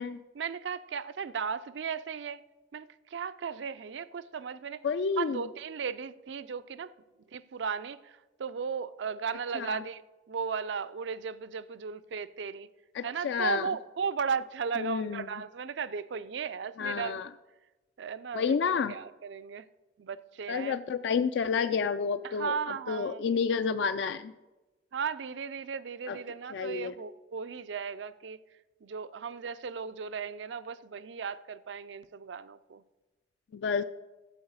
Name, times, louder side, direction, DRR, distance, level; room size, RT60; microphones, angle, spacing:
voice 1, 0.3-2.4 2.7-4.8 5.2-6.9 7.3-12.7 13.0-17.2 18.0-18.6 18.9-19.7 20.0-20.8 22.2-23.2 24.9-28.4 28.8-32.8, right 6 dB, 85° right, 0.4 m, -36 dB
voice 2, 4.8-5.4 9.6-9.8 12.9-13.7 14.8-15.2 16.8-17.3 18.3-18.9 20.5-22.5 22.9-24.3 26.1-26.2 26.5-26.9 33.5-33.8, left 6 dB, 80° left, 0.4 m, -30 dB
13.0 x 4.7 x 8.0 m
head